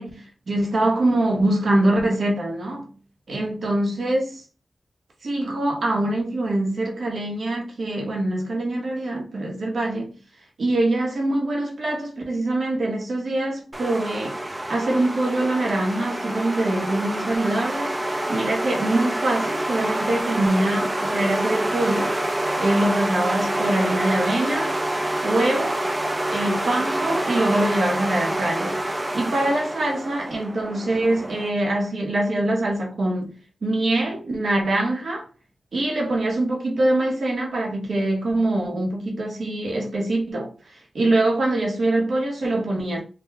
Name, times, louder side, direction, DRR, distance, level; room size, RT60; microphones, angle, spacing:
voice 1, 0.0-2.9 3.3-4.4 5.2-10.1 10.6-14.4 14.7-18.0 18.3-22.2 22.6-24.8 25.2-25.8 26.3-28.8 29.1-35.3 35.7-40.5 40.9-43.0, right 1 dB, 65° right, 1.2 m, -24 dB
sound 1, 13.7-31.5, right 1 dB, 20° right, 0.4 m, -27 dB
3.5 x 2.4 x 3.3 m
wide cardioid pair, 115°, 0 cm